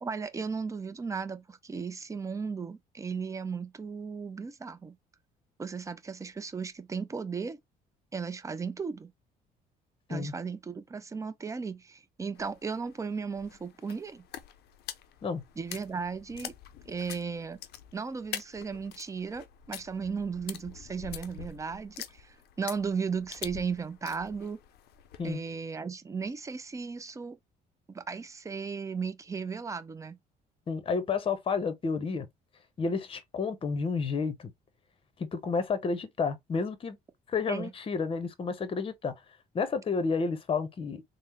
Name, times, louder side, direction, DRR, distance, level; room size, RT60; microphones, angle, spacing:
voice 1, 0.0-5.0 5.6-7.6 8.1-9.1 10.1-14.2 15.6-16.5 16.9-17.6 17.9-24.6 25.2-27.4 27.9-30.2 37.5-37.7, right 5 dB, 20° right, 0.4 m, -36 dB
sound 1, 12.3-25.4, left 10 dB, 70° left, 0.5 m, -45 dB
voice 2, 30.7-32.3 32.8-34.5 35.2-37.0 37.3-39.1 39.5-41.0, left 5 dB, 30° left, 0.7 m, -30 dB
3.5 x 2.0 x 2.9 m
cardioid pair, 110°, 17 cm